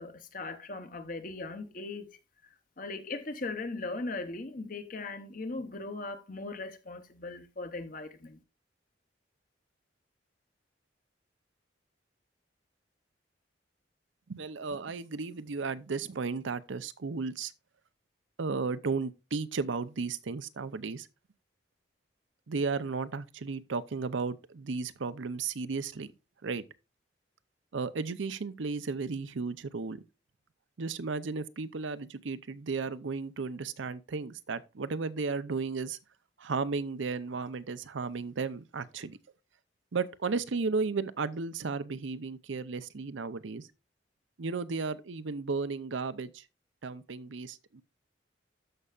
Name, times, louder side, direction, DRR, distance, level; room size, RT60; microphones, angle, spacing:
voice 1, 0.0-2.2 2.8-8.4, left 3 dB, 45° left, 0.9 m, -39 dB
voice 2, 14.3-17.5 18.4-21.1 22.5-26.1 26.4-26.6 27.7-30.0 30.8-36.0 36.4-39.2 39.9-43.7 44.4-46.4 46.8-47.8, right 4 dB, 80° right, 0.6 m, -34 dB
13.0 x 5.5 x 2.4 m
head